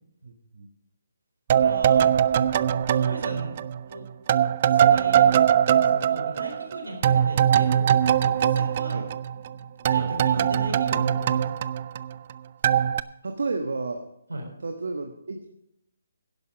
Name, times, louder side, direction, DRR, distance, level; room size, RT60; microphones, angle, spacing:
voice 1, 0.2-0.7 8.9-9.0 13.2-14.0 14.6-15.5, right 3 dB, 70° right, 5 dB, 1.2 m, -31 dB
sound 1, 1.5-3.9 4.3-9.5 9.9-12.3 12.6-13.0, right 9 dB, 40° right, 0.4 m, -21 dB
voice 2, 1.6-2.1 2.7-4.0 4.7-5.4 5.7-7.9 8.2-9.0 9.3-11.5 14.3-14.5, equal, 85° right, 3 dB, 4.1 m, -37 dB
11.0 x 11.0 x 5.1 m, 0.81 s
figure-of-eight pair, 145°, 0 cm